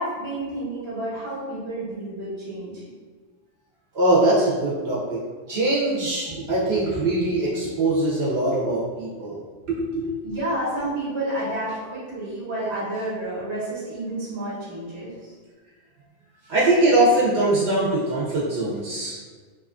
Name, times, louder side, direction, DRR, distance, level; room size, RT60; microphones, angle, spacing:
voice 1, 0.0-2.8 10.2-15.3, right 1 dB, 30° right, -7 dB, 0.8 m, -30 dB
voice 2, 3.9-5.2 5.5-9.4 9.7-10.3 16.4-19.2, right 2 dB, 65° right, -7 dB, 0.8 m, -22 dB
2.8 x 2.3 x 2.3 m, 1.4 s
omnidirectional pair, 1.2 m